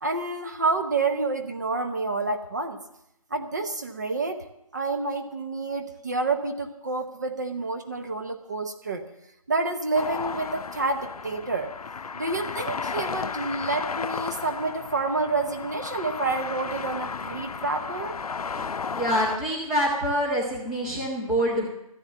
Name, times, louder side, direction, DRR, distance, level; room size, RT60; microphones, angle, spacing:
voice 1, 0.0-2.8 3.3-4.4 4.7-9.0 9.5-11.7 12.1-18.2, right 3 dB, 30° right, 6 dB, 0.9 m, -28 dB
sound 1, 9.9-19.4, left 5 dB, 80° left, 0.6 m, -34 dB
voice 2, 18.5-21.7, equal, 5° right, -4 dB, 0.9 m, -26 dB
14.0 x 10.5 x 7.4 m, 0.81 s
figure-of-eight pair, 170°, 19 cm